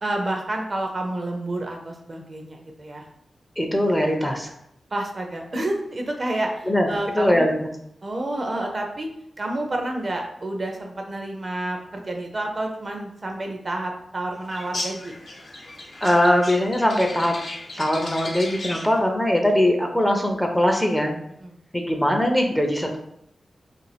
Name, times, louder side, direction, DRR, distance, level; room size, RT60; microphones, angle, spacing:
voice 1, 0.0-3.0 4.9-7.5 8.0-9.1 9.4-15.1 21.4-21.5, right 1 dB, 45° right, 2 dB, 0.5 m, -29 dB
voice 2, 3.6-4.5 6.7-6.9 7.2-7.5 16.0-17.4 17.8-21.2 21.7-23.0, left 1 dB, 5° left, 3 dB, 0.5 m, -21 dB
sound 1, 14.5-19.0, left 2 dB, 60° left, 0.7 m, -35 dB
2.5 x 2.2 x 3.3 m, 0.73 s
cardioid pair, 65°, 0 cm